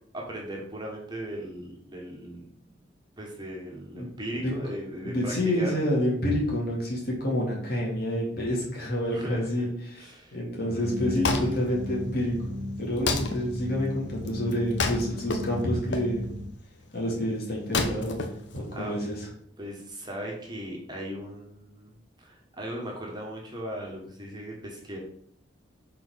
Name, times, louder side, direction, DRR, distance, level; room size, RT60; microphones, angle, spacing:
voice 1, 0.1-2.5 3.2-5.8 9.1-9.7 10.0-10.4 10.6-11.6 18.7-18.9 19.6-21.9 22.2-25.0, equal, 20° right, -1 dB, 1.6 m, -37 dB
voice 2, 5.0-16.4 16.9-19.3, equal, 55° left, -3 dB, 2.7 m, -28 dB
sound 1, 10.7-16.5, left 1 dB, 40° right, 0.9 m, -36 dB
Wood, 10.8-19.2, left 3 dB, 70° left, 1.0 m, -33 dB
6.0 x 4.4 x 5.8 m, 0.64 s
head